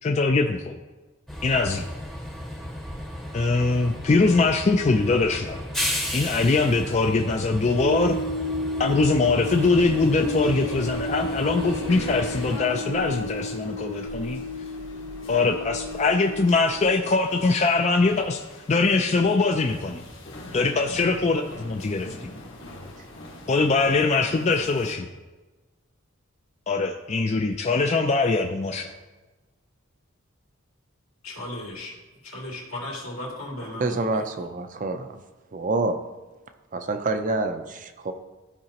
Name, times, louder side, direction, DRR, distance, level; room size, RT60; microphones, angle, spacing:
voice 1, 0.0-0.8 1.4-1.9 3.3-5.6 6.1-8.2 8.8-14.4 15.3-18.4 18.7-20.0 20.5-22.3 23.5-25.1 26.7-28.9, left 3 dB, 30° left, 4 dB, 0.4 m, -22 dB
Train, 1.3-12.6, equal, ahead, 0.8 m, -35 dB
sound 1, 7.8-16.9, equal, 60° right, 0.9 m, -32 dB
sound 2, 9.4-24.9, left 1 dB, 65° left, 1.5 m, -39 dB
voice 2, 31.2-31.9 32.2-34.1, left 1 dB, 85° left, -4 dB, 2.6 m, -35 dB
voice 3, 33.7-35.2 35.5-36.0 36.7-38.1, right 2 dB, 40° right, 7 dB, 0.5 m, -27 dB
13.5 x 4.8 x 2.9 m, 1.2 s
head